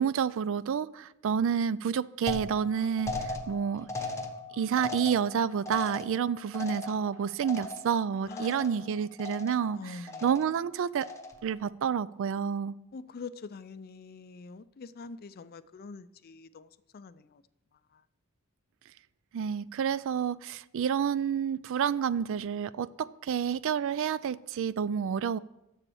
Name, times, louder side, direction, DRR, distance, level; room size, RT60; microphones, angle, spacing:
voice 1, 0.0-3.9 4.5-11.1 11.4-12.7 19.3-25.4, right 7 dB, 65° right, 0.3 m, -29 dB
sound 1, 2.3-8.0 8.3-8.9 9.2-9.7 10.1-10.6 11.0-11.5, left 2 dB, 15° left, 0.9 m, -38 dB
voice 2, 8.2-9.0 9.7-10.3 12.9-17.4, left 4 dB, 45° left, 0.4 m, -45 dB
7.2 x 6.8 x 7.0 m
head